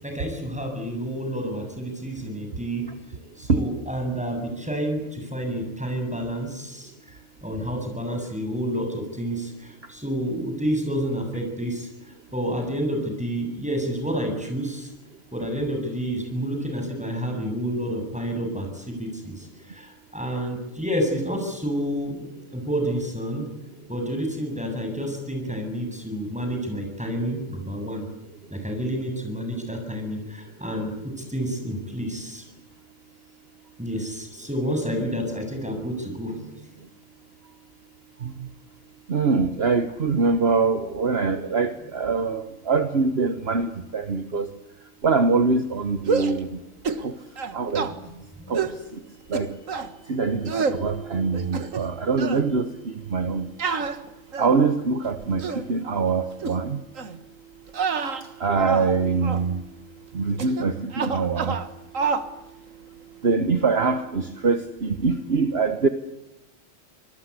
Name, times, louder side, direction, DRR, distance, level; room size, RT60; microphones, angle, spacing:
voice 1, 0.0-2.9 3.4-11.9 12.3-14.9 15.3-22.3 22.5-23.5 23.9-28.1 28.5-30.9 31.3-32.4 33.8-36.7 48.0-48.6, equal, 5° right, 3 dB, 7.8 m, -29 dB
voice 2, 39.1-44.5 45.0-46.5 47.0-47.1 47.5-47.9 48.5-48.7 49.3-49.5 50.1-53.5 54.4-56.8 58.4-59.6 60.1-61.6 63.2-65.9, right 4 dB, 50° right, 9 dB, 1.5 m, -23 dB
sound 1, 46.0-46.4 46.8-47.1 47.4-47.9 48.5-48.8 49.3-49.9 50.5-50.8 51.3-51.9 52.2-52.4 53.6-54.7 55.2-55.7 56.4-56.6 57.0-57.2 57.7-58.9 59.2-59.5 60.4-60.7 60.9-61.7 61.9-62.3, right 5 dB, 80° right, 2.0 m, -28 dB
26.5 x 20.5 x 8.3 m, 0.92 s
omnidirectional pair, 1.3 m